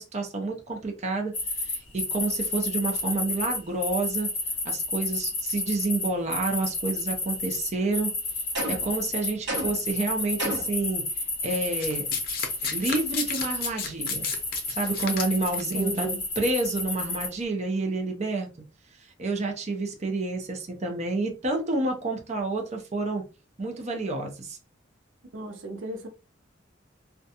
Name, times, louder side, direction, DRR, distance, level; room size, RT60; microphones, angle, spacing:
voice 1, 0.0-4.3 4.6-8.1 8.7-11.0 11.4-12.1 12.7-14.3 14.7-16.1 16.4-18.5 19.2-23.2 23.6-24.6, right 2 dB, 35° right, 0.6 m, -29 dB
sound 1, 1.3-13.7 14.0-17.3, left 2 dB, 30° left, 1.0 m, -31 dB
sound 2, 8.5-9.0 9.5-9.9 10.4-10.8, right 1 dB, 65° right, 0.9 m, -31 dB
Domestic sounds home sounds, 11.8-15.7 16.6-16.8, left 6 dB, 50° left, 0.5 m, -33 dB
voice 2, 15.7-16.2 25.3-26.1, right 2 dB, 85° right, 0.6 m, -34 dB
2.4 x 2.2 x 2.7 m
head